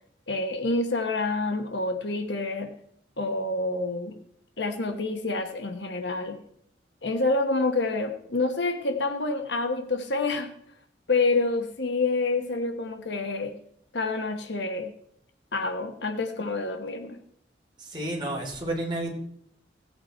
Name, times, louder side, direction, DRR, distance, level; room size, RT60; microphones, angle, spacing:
voice 1, 0.3-2.7 3.2-4.2 4.6-6.4 7.0-10.5 11.1-13.5 13.9-14.9 15.5-17.2, left 3 dB, 75° left, 7 dB, 1.2 m, -27 dB
voice 2, 17.8-19.1, right 1 dB, 25° right, -2 dB, 3.2 m, -31 dB
16.5 x 8.6 x 4.4 m, 0.70 s
head